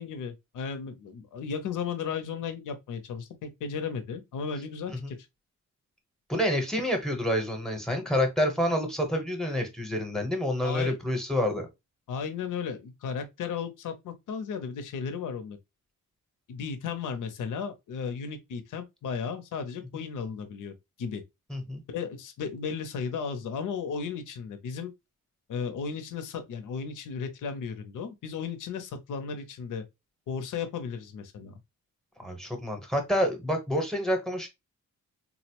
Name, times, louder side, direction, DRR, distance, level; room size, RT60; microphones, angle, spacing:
voice 1, 0.0-5.2 10.6-11.0 12.1-15.6 16.5-20.7 21.0-21.2 21.9-24.9 25.5-29.8 30.3-31.6, left 6 dB, 70° left, 0.6 m, -35 dB
voice 2, 6.3-11.7 19.9-20.0 21.5-21.8 32.2-34.5, equal, ahead, 0.8 m, -28 dB
3.8 x 2.0 x 2.8 m
wide cardioid pair, 125°, 33 cm